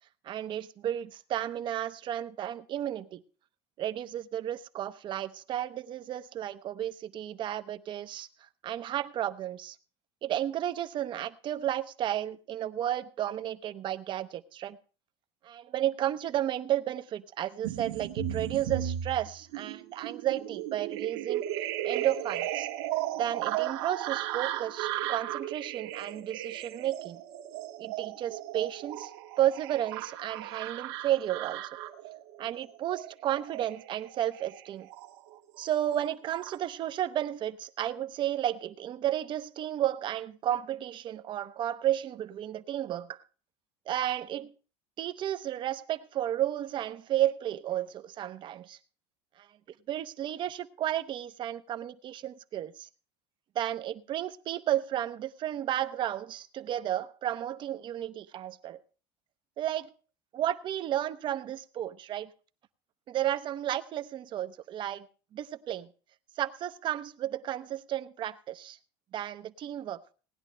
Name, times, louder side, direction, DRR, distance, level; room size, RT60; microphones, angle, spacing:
voice 1, 0.2-3.2 3.8-8.3 8.6-9.8 10.2-14.8 15.4-21.4 21.8-22.7 23.2-27.2 27.8-29.1 29.4-31.6 32.4-34.9 35.6-43.2 43.9-44.5 45.0-48.8 49.4-49.5 49.9-52.9 53.5-58.8 59.6-59.9 60.3-62.3 63.1-65.1 65.3-65.9 66.4-68.8 69.1-70.0, right 12 dB, 40° right, 12 dB, 0.8 m, -32 dB
sound 1, 17.6-35.4 35.7-36.6, right 12 dB, 80° right, 1.5 m, -36 dB
18.5 x 10.5 x 3.3 m, 0.38 s
supercardioid pair, 135°, 13 cm